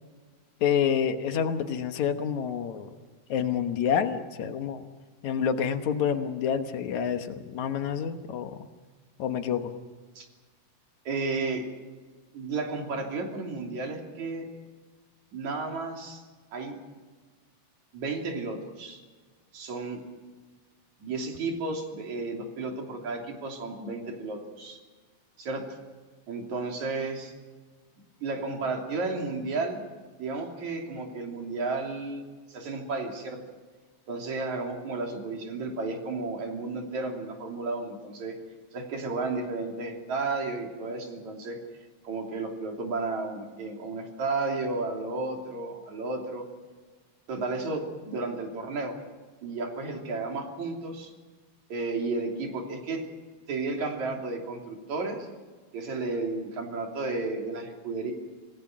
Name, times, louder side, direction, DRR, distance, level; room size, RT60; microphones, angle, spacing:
voice 1, 0.6-2.9 3.3-4.9 5.2-8.6 9.2-9.7, left 8 dB, 75° left, 8 dB, 2.5 m, -28 dB
voice 2, 11.1-11.6 12.3-14.5 15.3-16.2 16.5-16.8 17.9-19.0 19.5-20.0 21.0-24.8 25.4-25.7 26.3-27.3 28.2-29.8 30.2-33.4 34.1-38.4 38.7-41.6 42.0-46.5 47.3-49.0 49.4-51.1 51.7-53.0 53.5-55.3 55.7-58.1, right 3 dB, 70° right, 2 dB, 4.4 m, -33 dB
27.0 x 18.0 x 6.1 m, 1.4 s
omnidirectional pair, 3.4 m